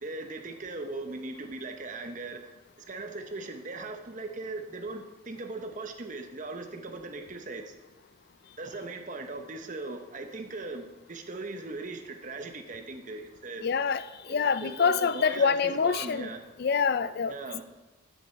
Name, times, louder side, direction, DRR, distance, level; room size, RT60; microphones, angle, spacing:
voice 1, 0.0-2.4 2.8-7.8 8.6-13.7 14.3-16.4 17.3-17.6, right 3 dB, 35° right, 6 dB, 0.8 m, -39 dB
voice 2, 13.6-16.3 16.6-17.3, left 5 dB, 50° left, 14 dB, 0.4 m, -26 dB
7.3 x 7.0 x 5.6 m, 1.1 s
head